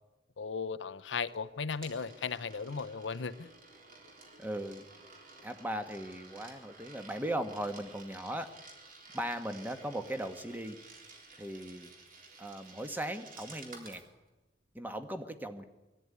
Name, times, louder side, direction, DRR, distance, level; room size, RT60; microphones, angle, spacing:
voice 1, 0.4-3.5, left 5 dB, 90° left, 12 dB, 0.7 m, -36 dB
Coin (dropping), 1.3-14.1, right 3 dB, 50° right, 3.8 m, -54 dB
voice 2, 4.4-4.9 5.4-8.5 9.1-10.8 11.3-11.9 12.4-14.0 14.7-15.6, right 1 dB, 10° right, 8 dB, 1.3 m, -38 dB
22.5 x 14.0 x 9.6 m, 1.1 s
head